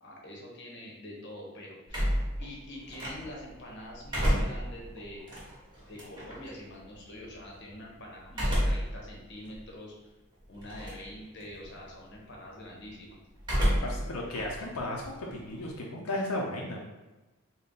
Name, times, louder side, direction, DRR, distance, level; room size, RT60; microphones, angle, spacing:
voice 1, 0.0-2.1 2.4-5.3 5.9-10.1 10.5-13.2, left 1 dB, 55° left, -2 dB, 0.8 m, -45 dB
sound 1, 1.9-3.5 3.9-6.5 8.3-9.0 9.5-9.6 10.6-11.1 11.4-11.8 13.4-14.1 14.4-15.8, equal, 20° right, 1.1 m, -30 dB
voice 2, 13.8-16.8, left 1 dB, 90° left, -2 dB, 0.5 m, -34 dB
3.9 x 2.1 x 3.7 m, 1.1 s
head